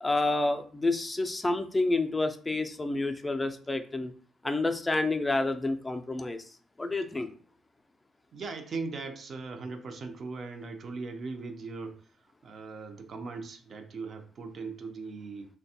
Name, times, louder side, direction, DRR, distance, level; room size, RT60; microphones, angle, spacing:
voice 1, 0.0-4.1 4.4-6.4 6.8-7.3, left 2 dB, 15° left, 7 dB, 0.4 m, -29 dB
voice 2, 8.3-12.0 12.4-15.5, right 4 dB, 50° right, 6 dB, 0.5 m, -39 dB
3.3 x 2.2 x 2.7 m, 0.42 s
cardioid pair, 90°, 0 cm